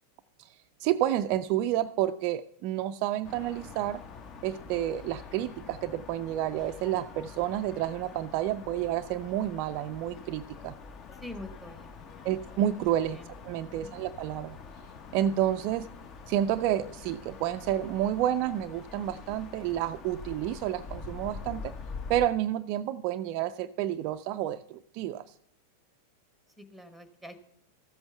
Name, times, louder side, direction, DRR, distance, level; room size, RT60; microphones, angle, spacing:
voice 1, 0.8-4.1 4.4-10.7 12.2-13.2 13.4-14.6 15.1-15.9 16.3-21.7 22.1-25.2, right 12 dB, 45° right, 11 dB, 0.3 m, -30 dB
sound 1, 3.2-22.3, left 5 dB, 30° left, 0.9 m, -45 dB
voice 2, 11.2-12.3 13.1-13.3 13.7-14.0 26.6-27.4, left 1 dB, ahead, 10 dB, 1.1 m, -46 dB
14.0 x 7.9 x 4.4 m, 0.68 s
figure-of-eight pair, 90°, 0 cm